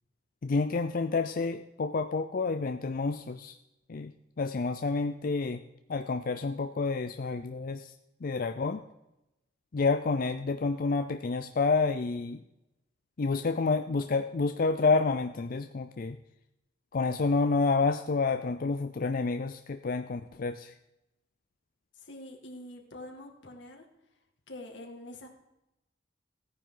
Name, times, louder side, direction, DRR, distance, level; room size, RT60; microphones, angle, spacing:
voice 1, 0.4-3.6 3.9-5.6 5.9-7.9 8.2-8.8 9.7-12.4 13.2-16.2 16.9-20.7, left 4 dB, 50° left, 8 dB, 0.5 m, -29 dB
voice 2, 22.0-23.9 24.5-25.3, left 1 dB, 85° left, 2 dB, 2.1 m, -45 dB
16.5 x 9.6 x 3.8 m, 0.90 s
head